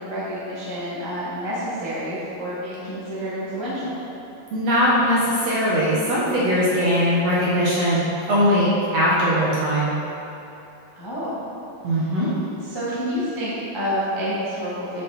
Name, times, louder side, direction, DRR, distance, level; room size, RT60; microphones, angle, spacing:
voice 1, 0.0-4.0 10.9-11.4 11.8-12.1 12.6-15.0, equal, 15° left, -10 dB, 1.0 m, -29 dB
voice 2, 4.5-9.9 11.8-12.3, equal, 60° right, -7 dB, 2.0 m, -20 dB
10.5 x 6.3 x 4.3 m, 2.9 s
omnidirectional pair, 4.2 m